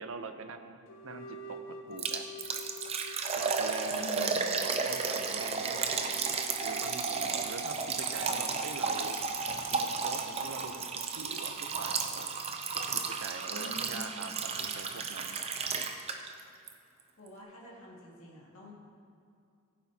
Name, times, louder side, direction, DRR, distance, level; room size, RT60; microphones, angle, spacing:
voice 1, 0.0-2.2 3.4-4.3 4.6-6.2 6.6-9.2 9.7-12.3 12.8-15.4, right 4 dB, 75° right, 8 dB, 0.7 m, -43 dB
sound 1, 0.9-7.6, left 1 dB, 65° left, 0.7 m, -48 dB
Liquid, 2.0-16.4 16.7-16.8 17.3-17.4, right 5 dB, 30° right, 0.5 m, -33 dB
voice 2, 4.0-4.4 13.5-14.1 17.2-18.7, left 1 dB, 80° left, -5 dB, 2.2 m, -46 dB
15.0 x 9.2 x 2.8 m, 2.4 s
head